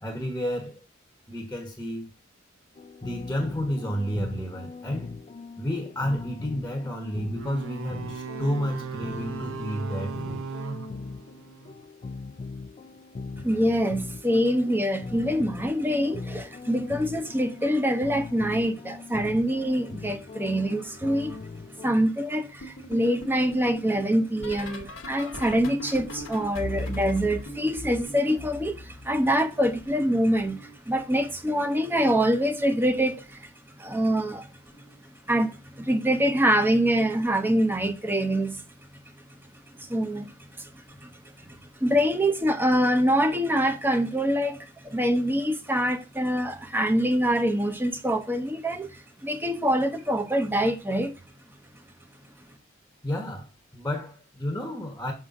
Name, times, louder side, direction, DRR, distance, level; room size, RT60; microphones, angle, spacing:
voice 1, 0.0-0.8 1.3-2.1 3.0-5.2 5.6-10.4 41.4-41.6 53.0-55.1, equal, 10° left, 1.0 m, -31 dB
sound 1, 2.8-22.0, left 3 dB, 30° left, 0.3 m, -40 dB
sound 2, 7.4-11.8, right 5 dB, 70° right, 0.6 m, -37 dB
voice 2, 13.4-21.4 21.8-33.5 33.8-34.5 35.3-38.6 39.8-41.1 41.5-51.1, equal, 10° right, 0.7 m, -25 dB
sound 3, 22.6-29.4 29.6-31.2 32.2-32.6 32.8-33.2 34.7-35.0 35.3-35.6 37.2-37.3, left 1 dB, 85° left, 1.1 m, -39 dB
6.2 x 5.5 x 3.6 m
head